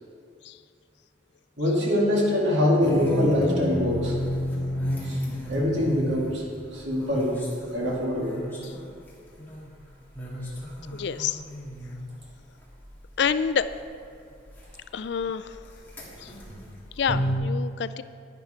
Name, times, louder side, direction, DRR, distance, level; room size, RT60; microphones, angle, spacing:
voice 1, 1.6-4.2 5.0-5.2 5.5-6.4 6.7-7.4 7.7-8.4, left 1 dB, 65° right, -3 dB, 2.4 m, -24 dB
sound 1, 2.8-9.8 10.1-14.1 14.4-17.4, equal, 10° left, 1.8 m, -32 dB
voice 2, 10.9-11.4 13.2-13.7 14.9-15.6 16.2-16.3 17.0-18.0, left 6 dB, 60° left, 14 dB, 0.3 m, -27 dB
10.5 x 10.5 x 4.4 m, 2.4 s
head